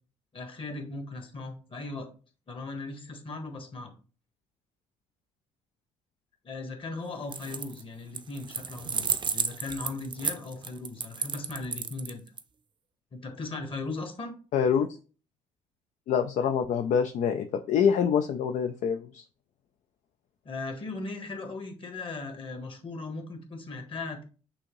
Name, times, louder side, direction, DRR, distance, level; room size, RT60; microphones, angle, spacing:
voice 1, 0.3-2.1 2.5-3.9 6.4-12.2 13.1-14.3 20.4-24.2, left 3 dB, 40° left, 5 dB, 1.5 m, -38 dB
sound 1, 7.2-7.8 8.1-12.4, right 6 dB, 35° right, 0.5 m, -32 dB
voice 2, 14.5-15.0 16.1-19.2, left 7 dB, 60° left, 7 dB, 0.4 m, -26 dB
6.2 x 2.7 x 3.1 m, 0.37 s
supercardioid pair, 60°, 14 cm